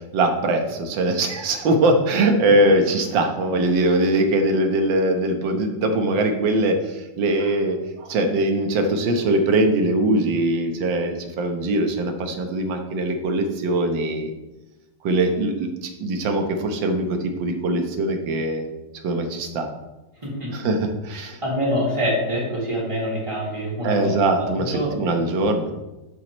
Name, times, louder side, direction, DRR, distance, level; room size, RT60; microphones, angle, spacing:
voice 1, 0.1-14.3 15.0-18.7 19.0-19.7 20.5-21.4 23.8-25.7, right 2 dB, 80° right, 5 dB, 1.7 m, -21 dB
voice 2, 20.2-20.5 21.1-25.1, equal, 15° right, -5 dB, 2.7 m, -26 dB
10.5 x 7.4 x 3.0 m, 1.1 s
omnidirectional pair, 2.0 m